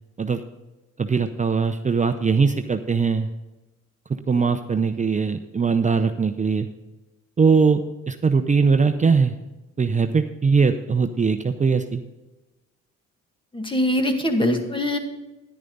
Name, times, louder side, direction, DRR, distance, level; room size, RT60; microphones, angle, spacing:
voice 1, 1.0-3.3 4.3-6.7 7.4-9.3 9.8-12.0, right 5 dB, 25° right, 7 dB, 0.7 m, -21 dB
voice 2, 13.5-15.0, left 1 dB, 15° left, 5 dB, 2.0 m, -22 dB
11.0 x 10.0 x 4.0 m, 1.1 s
cardioid pair, 90°, 30 cm